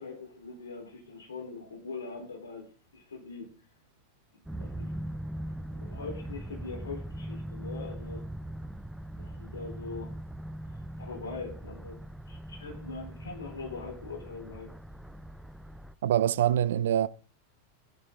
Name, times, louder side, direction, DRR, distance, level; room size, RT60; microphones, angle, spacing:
voice 1, 0.0-2.7 2.9-3.5 4.6-4.9 5.4-8.2 9.2-10.1 11.0-12.0 12.3-14.7, left 4 dB, 70° left, 4.2 m, -42 dB
sound 1, 4.4-15.9, right 1 dB, 5° right, 0.5 m, -40 dB
voice 2, 16.0-17.1, right 11 dB, 60° right, 0.4 m, -24 dB
11.5 x 11.0 x 3.9 m
figure-of-eight pair, 90°, 0 cm